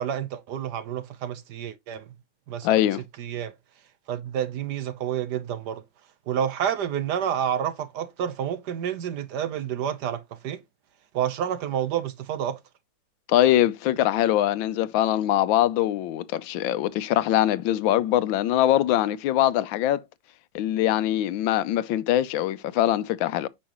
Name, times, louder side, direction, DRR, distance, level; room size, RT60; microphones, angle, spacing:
voice 1, 0.0-2.0 2.5-2.8 3.2-3.5 4.1-5.8 6.3-10.6 11.1-12.6, right 9 dB, 65° right, 1.2 m, -29 dB
voice 2, 2.6-3.0 13.3-20.0 20.5-23.5, left 13 dB, 80° left, 1.4 m, -22 dB
8.6 x 5.6 x 2.9 m
omnidirectional pair, 2.1 m